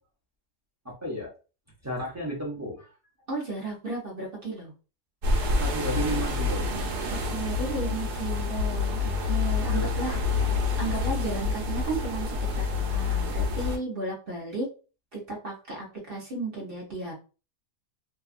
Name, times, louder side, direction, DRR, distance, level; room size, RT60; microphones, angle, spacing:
voice 1, 0.8-1.3 1.8-3.0 5.6-6.7 9.7-10.6, equal, 15° right, -4 dB, 0.5 m, -34 dB
voice 2, 3.3-4.7 7.0-10.2 10.8-14.7 15.1-17.1, right 3 dB, 45° right, -2 dB, 0.9 m, -34 dB
sound 1, 5.2-13.8, left 3 dB, 85° right, 1.2 m, -27 dB
2.7 x 2.2 x 2.4 m, 0.33 s
omnidirectional pair, 1.7 m